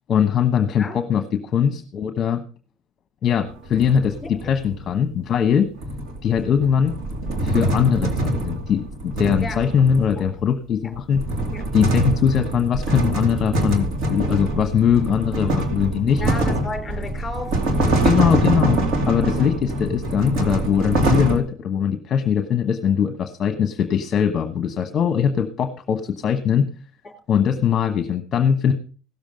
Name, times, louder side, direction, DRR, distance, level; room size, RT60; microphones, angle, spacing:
voice 1, 0.1-2.4 3.2-5.7 6.2-7.0 7.4-11.2 11.7-16.2 18.0-26.7 27.3-28.7, left 8 dB, 35° left, 8 dB, 1.1 m, -21 dB
sound 1, 3.5-4.8 5.8-10.4 10.9-21.4, right 1 dB, 55° right, 2.7 m, -24 dB
voice 2, 16.2-18.0 27.0-27.1, left 3 dB, 15° left, 5 dB, 3.7 m, -33 dB
16.5 x 7.3 x 5.1 m, 0.38 s
cardioid pair, 135°, 0 cm